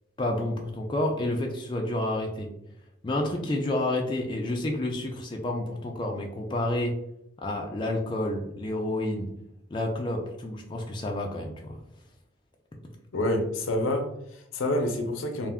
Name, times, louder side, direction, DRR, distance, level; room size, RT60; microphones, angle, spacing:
voice 1, 0.2-2.5 3.0-6.9 7.4-9.3 9.7-11.8, left 1 dB, 25° left, 0 dB, 0.3 m, -29 dB
voice 2, 13.1-15.5, left 1 dB, 75° left, 5 dB, 0.5 m, -28 dB
2.4 x 2.2 x 3.5 m, 0.80 s
head